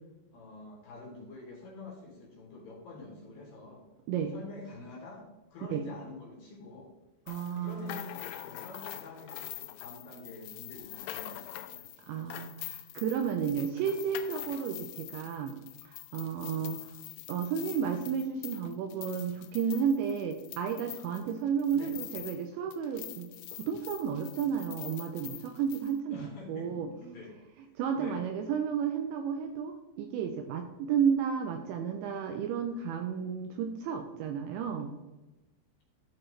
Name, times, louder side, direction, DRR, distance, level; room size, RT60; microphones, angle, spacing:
voice 1, 0.3-3.8 4.3-6.9 7.6-11.9 21.7-22.0 26.0-27.4 27.9-28.2, left 3 dB, 60° left, -2 dB, 2.6 m, -47 dB
sound 1, 7.3-22.5 22.7-25.9, left 15 dB, 85° left, 3.1 m, -45 dB
voice 2, 7.3-8.0 12.1-15.5 15.9-16.9 17.3-23.3 23.6-26.9 27.8-34.9, right 7 dB, 85° right, 5 dB, 2.6 m, -32 dB
13.0 x 4.5 x 3.2 m, 1.1 s
omnidirectional pair, 5.7 m